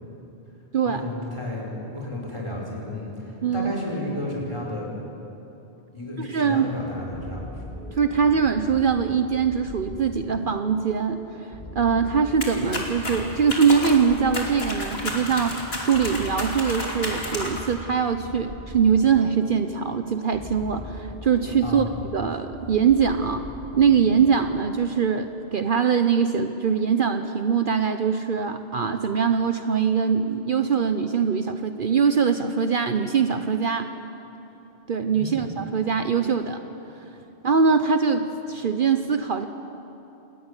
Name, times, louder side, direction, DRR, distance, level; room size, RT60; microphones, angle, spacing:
voice 1, 0.9-4.9 5.9-7.5 21.6-21.9 35.1-35.5, left 1 dB, 25° left, -2 dB, 5.1 m, -32 dB
voice 2, 3.4-3.7 6.2-6.7 7.9-21.9 22.1-23.4 23.8-33.9 34.9-36.6 37.4-39.5, right 6 dB, 55° right, 7 dB, 1.0 m, -22 dB
sound 1, 7.1-24.7, left 1 dB, 50° left, 4.3 m, -40 dB
sound 2, 12.4-17.7, left 1 dB, 65° left, 3.3 m, -32 dB
28.0 x 13.5 x 9.8 m, 3.0 s
omnidirectional pair, 1.1 m